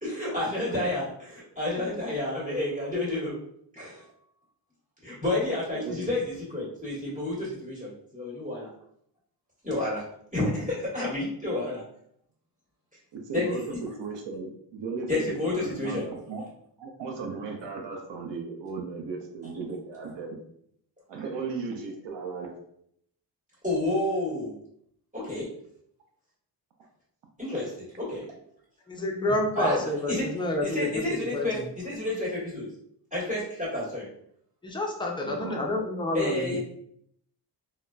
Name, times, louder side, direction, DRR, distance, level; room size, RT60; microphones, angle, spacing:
voice 1, 0.0-3.4 3.7-4.0 5.0-8.7 9.6-10.1 10.3-11.8 13.3-13.8 15.1-16.0 23.6-24.5 25.1-25.5 27.4-28.3 29.5-30.3 30.6-32.7 33.1-34.1 36.1-36.6, left 1 dB, 15° right, -8 dB, 1.4 m, -30 dB
voice 2, 13.1-16.4 16.8-20.4 21.1-22.5 35.2-35.9 36.5-36.6, right 4 dB, 75° right, 2 dB, 0.7 m, -36 dB
voice 3, 28.9-31.0 31.3-31.6 34.6-36.6, left 1 dB, 10° left, 0 dB, 0.4 m, -29 dB
3.9 x 2.1 x 2.2 m, 0.69 s
wide cardioid pair, 145°, 42 cm